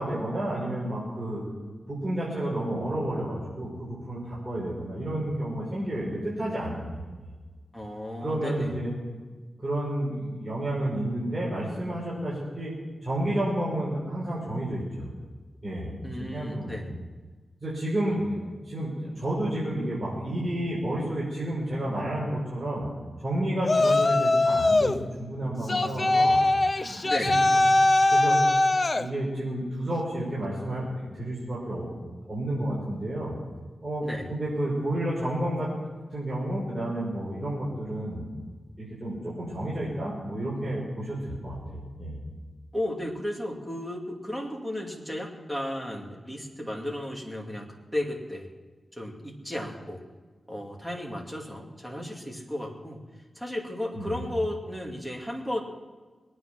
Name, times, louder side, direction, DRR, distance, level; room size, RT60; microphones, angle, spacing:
voice 1, 0.0-1.4 1.9-7.0 8.2-8.9 9.6-12.7 13.0-15.1 15.6-15.9 16.2-16.8 17.6-22.9 23.2-26.4 26.7-27.4 27.8-28.4 28.9-32.0 32.3-33.4 33.8-35.7 36.1-38.2 38.8-42.2 53.9-54.2, right 1 dB, 20° right, -8 dB, 5.4 m, -31 dB
voice 2, 7.7-8.7 16.0-17.0 27.0-27.4 34.0-34.3 42.7-48.5 48.9-50.0 50.5-53.0 53.3-55.6, left 1 dB, 5° left, -1 dB, 2.5 m, -34 dB
Yell, 23.6-25.0 25.7-29.1, left 2 dB, 30° left, 0.6 m, -21 dB
22.0 x 9.5 x 6.1 m, 1.4 s
wide cardioid pair, 130°, 0 cm